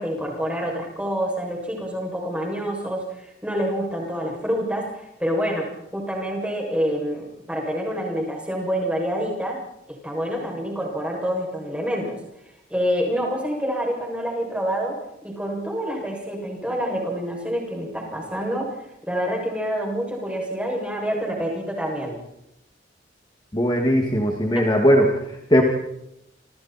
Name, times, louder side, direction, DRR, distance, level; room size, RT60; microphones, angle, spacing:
voice 1, 0.0-9.6 9.9-12.2 12.7-22.2 24.5-24.7, equal, 5° right, 0 dB, 7.2 m, -27 dB
voice 2, 23.5-25.1 25.5-25.6, equal, 25° left, 1 dB, 2.5 m, -18 dB
29.0 x 27.0 x 4.5 m, 0.82 s
head